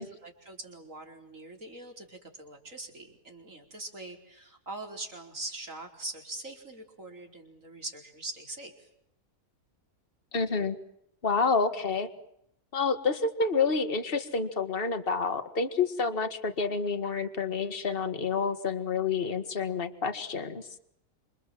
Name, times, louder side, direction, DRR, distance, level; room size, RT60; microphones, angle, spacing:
voice 1, 0.0-8.9, right 2 dB, 55° right, 3 dB, 5.0 m, -42 dB
voice 2, 10.3-10.8 11.2-12.1 12.7-20.6, left 4 dB, 40° left, 8 dB, 2.0 m, -28 dB
27.5 x 27.0 x 7.7 m, 0.77 s
omnidirectional pair, 1.6 m